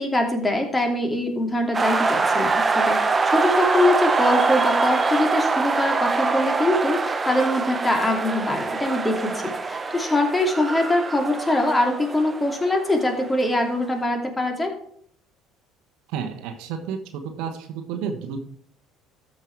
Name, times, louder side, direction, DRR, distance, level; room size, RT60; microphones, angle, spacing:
voice 1, 0.0-14.7, left 1 dB, 20° left, 3 dB, 2.7 m, -23 dB
sound 1, 1.7-13.4, right 4 dB, 25° right, 1.0 m, -24 dB
voice 2, 16.1-18.4, right 7 dB, 65° right, 6 dB, 1.2 m, -31 dB
13.5 x 5.6 x 4.7 m, 0.64 s
hypercardioid pair, 60°, 0 cm